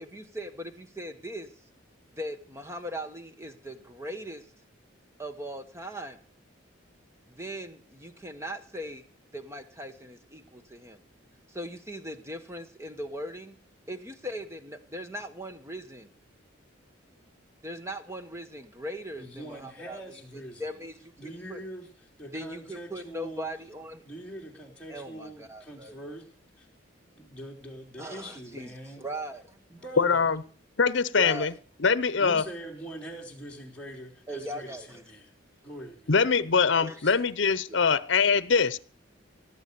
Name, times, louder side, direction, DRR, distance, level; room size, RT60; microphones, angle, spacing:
voice 1, 0.0-1.5 2.2-4.5 5.2-6.2 7.3-9.0 9.3-11.0 11.5-13.5 13.9-16.1 17.6-21.6 22.2-24.0 24.9-25.9 28.0-29.6 31.2-31.5 34.3-35.0 36.8-37.0 37.7-37.8, equal, 15° right, 1.2 m, -39 dB
voice 2, 19.2-20.7 21.2-21.9 22.2-23.5 24.0-26.3 26.6-26.7 27.1-29.1 29.7-30.3 32.2-35.3 35.6-36.1 37.0-37.1, right 1 dB, 5° left, 3.4 m, -43 dB
voice 3, 30.0-30.4 30.8-31.5 31.8-32.4 36.1-38.8, left 5 dB, 65° left, 0.8 m, -23 dB
18.0 x 8.1 x 6.9 m
head